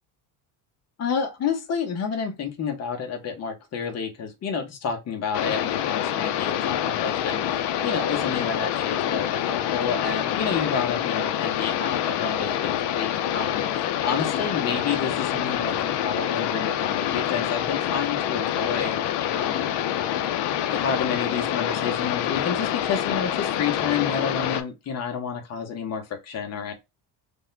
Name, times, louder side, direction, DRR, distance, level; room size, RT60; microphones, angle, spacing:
voice 1, 1.0-19.7 20.6-26.7, left 6 dB, 35° left, 0.8 m, -30 dB
sound 1, 5.3-24.6, left 11 dB, 65° left, 0.5 m, -26 dB
3.5 x 2.2 x 2.4 m
cardioid pair, 160°, 46 cm